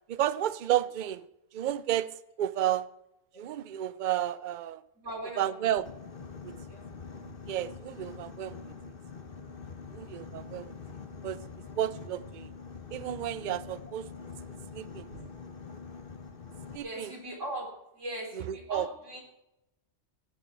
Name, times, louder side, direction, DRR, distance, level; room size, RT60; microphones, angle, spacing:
voice 1, 0.1-1.3 1.5-2.9 3.4-4.8 5.4-5.9 6.4-6.6 7.5-8.6 9.9-10.8 11.2-11.4 11.8-12.5 12.9-14.1 14.7-15.1 16.7-17.1 18.3-18.9, right 12 dB, 55° right, 0.6 m, -32 dB
voice 2, 5.0-5.6 6.7-6.9 11.6-11.8 15.1-15.3 16.8-19.2, right 1 dB, 85° right, 3.8 m, -40 dB
Boat Water vehicle, 5.8-16.8, left 5 dB, 50° left, 1.4 m, -45 dB
17.5 x 11.0 x 4.5 m
omnidirectional pair, 1.2 m